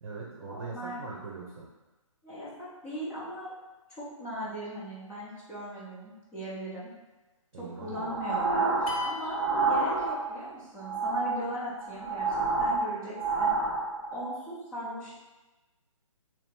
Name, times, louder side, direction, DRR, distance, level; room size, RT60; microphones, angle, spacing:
voice 1, 0.0-1.7 7.5-8.2, right 4 dB, 50° right, -4 dB, 0.7 m, -41 dB
voice 2, 0.5-1.0 2.2-3.5 3.9-6.9 7.6-13.5 14.1-15.1, equal, 5° left, -10 dB, 0.3 m, -39 dB
sound 1, 7.8-10.5 10.8-14.3, right 3 dB, 15° right, 0.8 m, -29 dB
sound 2, 8.9-10.6, left 4 dB, 85° left, 0.8 m, -38 dB
2.8 x 2.6 x 3.6 m, 1.1 s
hypercardioid pair, 155°, 17 cm